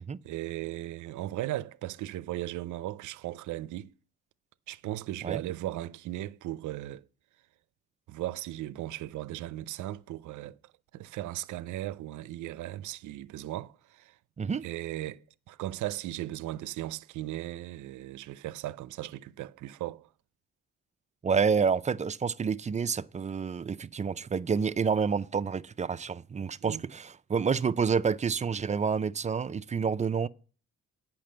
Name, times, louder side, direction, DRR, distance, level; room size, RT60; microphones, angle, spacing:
voice 1, 0.0-3.9 4.7-7.0 8.1-10.6 10.9-14.2 14.6-20.1 26.6-26.9, right 15 dB, 75° right, 0.5 m, -37 dB
voice 2, 21.2-30.3, right 6 dB, 25° right, 0.4 m, -28 dB
8.6 x 5.9 x 7.6 m
cardioid pair, 90°, 30 cm